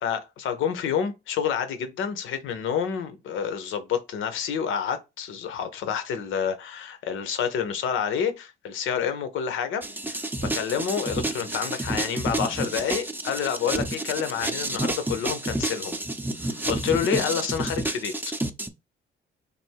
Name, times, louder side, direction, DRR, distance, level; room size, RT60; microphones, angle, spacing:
voice 1, 0.0-16.0 16.4-18.1, left 7 dB, 85° left, 0.8 m, -28 dB
sound 1, 9.8-18.7, right 2 dB, 10° right, 0.5 m, -30 dB
3.4 x 2.6 x 4.5 m
cardioid pair, 90°, 20 cm